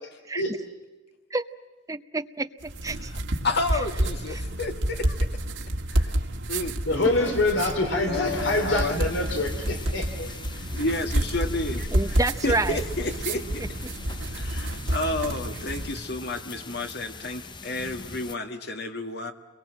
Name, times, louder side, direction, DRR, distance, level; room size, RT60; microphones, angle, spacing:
voice 1, 1.9-3.1 4.3-4.4 7.3-7.4 11.9-12.8, right 2 dB, 15° right, 10 dB, 0.8 m, -29 dB
sound 1, 2.6-16.1, right 1 dB, 80° right, 2.0 m, -29 dB
voice 2, 3.4-5.4 5.9-6.2 6.5-7.3 8.1-9.0 10.7-12.2 12.4-13.7 14.3-19.3, left 2 dB, 60° left, 6 dB, 2.0 m, -31 dB
voice 3, 6.9-10.3, left 2 dB, 75° left, 5 dB, 3.3 m, -25 dB
sound 2, 8.2-18.3, left 3 dB, 25° left, 0.9 m, -41 dB
29.5 x 22.5 x 7.6 m, 1.2 s
head